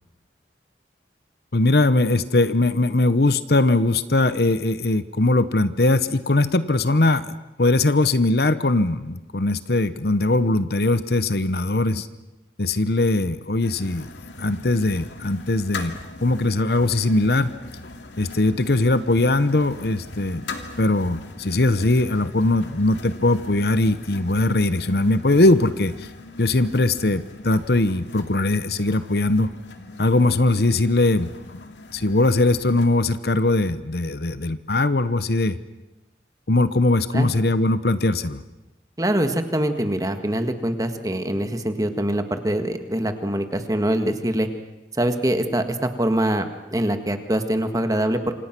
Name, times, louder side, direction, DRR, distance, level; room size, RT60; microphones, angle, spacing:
voice 1, 1.5-12.1 12.6-14.1 14.4-17.5 18.2-20.5 20.8-26.1 26.4-29.5 30.0-35.6 36.5-38.4, left 2 dB, 60° left, 13 dB, 1.0 m, -20 dB
sound 1, 13.6-32.9, left 2 dB, 85° left, 2.7 m, -40 dB
voice 2, 39.0-44.5 44.9-48.2, right 1 dB, 20° right, 8 dB, 1.8 m, -24 dB
27.5 x 26.0 x 6.1 m, 1.0 s
head